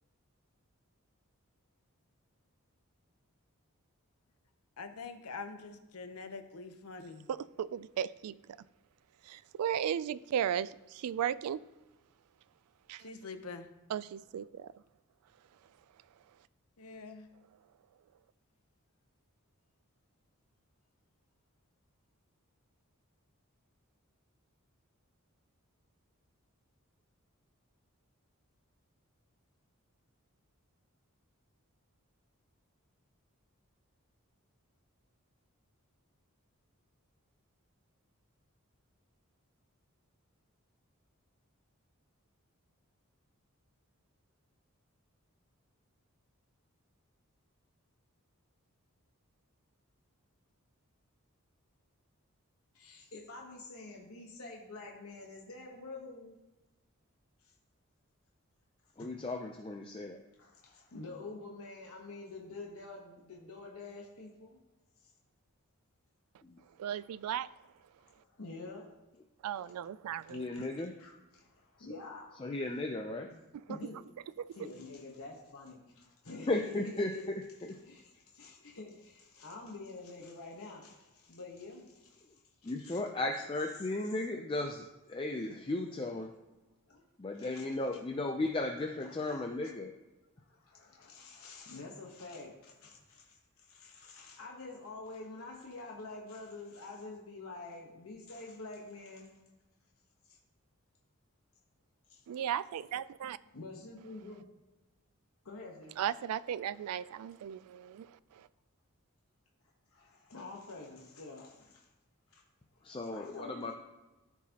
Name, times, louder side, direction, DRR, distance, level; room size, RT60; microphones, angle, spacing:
voice 1, 4.8-7.3 13.0-13.7 16.8-17.3, left 4 dB, 90° left, 8 dB, 0.8 m, -45 dB
voice 2, 7.3-8.4 9.3-11.6 12.9-13.0 13.9-14.7 66.8-67.5 69.4-70.4 102.3-103.4 106.0-108.1, right 9 dB, 85° right, 17 dB, 0.3 m, -35 dB
voice 3, 52.7-56.4 57.4-57.5 59.0-59.1 60.4-64.6 65.0-65.1 68.0-68.9 70.5-72.4 73.3-73.4 73.7-74.1 74.5-77.3 77.6-82.2 82.6-83.0 86.9-87.0 87.4-88.0 89.0-89.7 90.5-99.4 100.3-100.4 102.1-102.2 103.4-104.5 105.4-106.0 109.9-111.9 112.3-112.4 112.7-112.8 113.1-113.7, left 3 dB, 75° left, -1 dB, 1.1 m, -48 dB
voice 4, 59.0-60.2 66.4-66.6 70.3-70.9 71.8-71.9 72.4-73.3 76.5-77.4 82.6-86.3 87.2-89.9 112.8-113.7, left 2 dB, 25° left, 3 dB, 0.4 m, -35 dB
13.5 x 4.6 x 2.8 m, 1.1 s
head